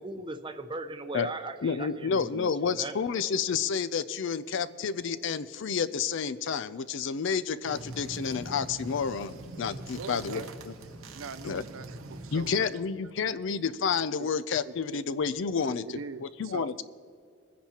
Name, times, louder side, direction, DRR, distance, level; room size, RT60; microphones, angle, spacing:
voice 1, 0.0-2.9, right 2 dB, 25° right, 8 dB, 0.6 m, -38 dB
voice 2, 1.6-10.7 11.4-11.6 12.3-15.8 16.2-16.8, left 6 dB, 60° left, 15 dB, 0.4 m, -30 dB
sound 1, 7.7-12.8, right 2 dB, 90° right, 1.0 m, -43 dB
voice 3, 9.9-10.5 11.1-12.7 14.2-14.3 14.7-15.0 15.6-16.8, right 5 dB, 75° right, 13 dB, 0.5 m, -42 dB
21.5 x 10.0 x 2.9 m, 2.2 s
head